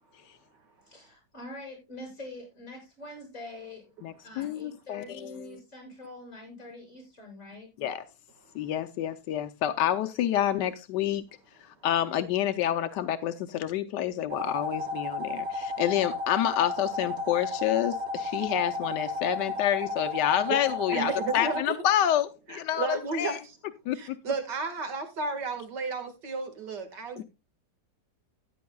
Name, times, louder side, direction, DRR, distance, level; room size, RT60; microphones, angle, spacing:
voice 1, 0.9-3.9 4.2-7.7, left 1 dB, 50° left, 6.3 m, -44 dB
voice 2, 4.0-5.5 7.8-8.0 8.5-11.2 11.8-23.4 23.9-24.0 27.2-27.3, left 11 dB, 85° left, 1.3 m, -28 dB
sound 1, 14.3-21.6, left 2 dB, 40° right, 4.0 m, -33 dB
voice 3, 20.9-21.8 22.5-23.6 23.9-27.2, right 4 dB, 85° right, 2.4 m, -33 dB
14.0 x 10.0 x 2.3 m
omnidirectional pair, 1.8 m